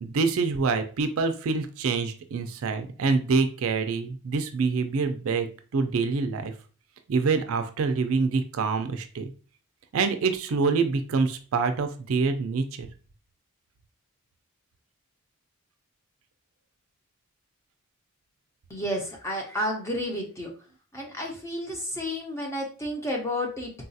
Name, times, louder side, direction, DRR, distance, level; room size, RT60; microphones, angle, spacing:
voice 1, 0.0-5.5 5.7-6.5 7.1-9.3 9.9-12.9, right 4 dB, 70° right, 8 dB, 0.4 m, -26 dB
voice 2, 18.7-20.5 20.9-23.7, equal, 15° left, -1 dB, 0.6 m, -31 dB
3.8 x 2.3 x 2.6 m, 0.38 s
head